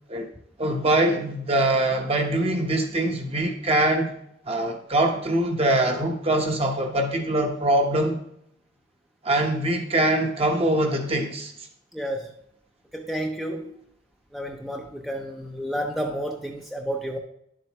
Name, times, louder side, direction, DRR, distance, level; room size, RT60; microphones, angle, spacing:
voice 1, 0.6-4.1 4.5-8.2 9.2-11.5, right 1 dB, 35° right, 1.1 m, -23 dB
voice 2, 11.9-12.3 12.9-13.7 14.3-17.2, equal, ahead, 0.6 m, -31 dB
10.5 x 7.5 x 3.1 m
head